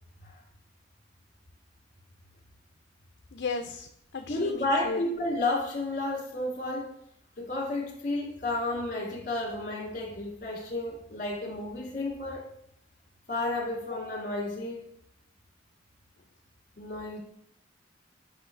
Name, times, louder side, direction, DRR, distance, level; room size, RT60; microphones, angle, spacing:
voice 1, 3.3-5.0, left 4 dB, 60° left, 6 dB, 0.5 m, -35 dB
voice 2, 4.3-6.9 7.4-12.5 13.3-14.9 16.8-17.2, left 2 dB, 45° left, 0 dB, 2.3 m, -32 dB
8.7 x 5.7 x 3.2 m, 0.73 s
head